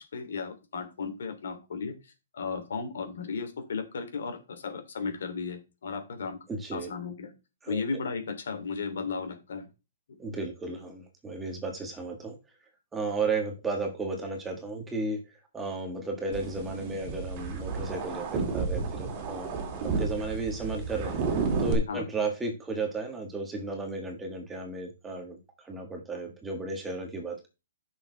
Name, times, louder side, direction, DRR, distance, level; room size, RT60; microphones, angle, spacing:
voice 1, 0.0-1.9 2.3-6.4 6.7-7.3 7.7-9.7 21.9-22.0, left 5 dB, 70° left, 6 dB, 2.9 m, -35 dB
voice 2, 6.5-6.9 7.6-7.8 10.2-12.4 12.9-15.2 15.5-19.5 19.8-27.5, right 3 dB, 10° right, 3 dB, 1.5 m, -34 dB
sound 1, 16.3-21.7, right 5 dB, 25° right, 2.4 m, -31 dB
10.5 x 6.4 x 3.3 m, 0.28 s
hypercardioid pair, 160°, 0 cm